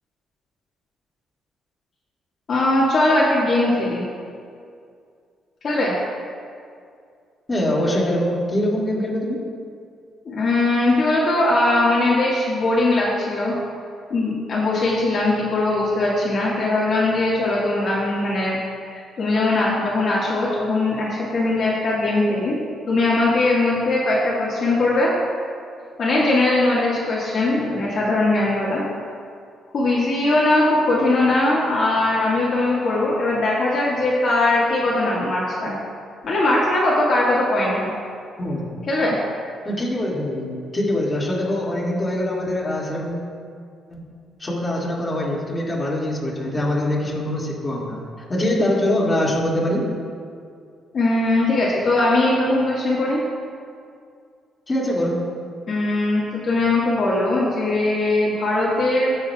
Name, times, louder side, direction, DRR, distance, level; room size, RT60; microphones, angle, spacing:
voice 1, 2.5-4.0 5.6-5.9 10.3-13.5 14.1-18.6 18.9-22.6 22.9-25.1 26.0-28.8 29.7-35.7 36.2-37.9 38.9-39.2 50.9-53.2 55.7-59.2, left 2 dB, 55° left, -6 dB, 1.8 m, -20 dB
voice 2, 7.5-9.4 38.4-38.7 39.6-43.2 43.9-44.0 44.4-48.0 48.3-49.9 54.7-55.2, left 1 dB, 25° left, -5 dB, 2.3 m, -23 dB
16.0 x 6.6 x 2.4 m, 2.3 s
cardioid pair, 90°, 0 cm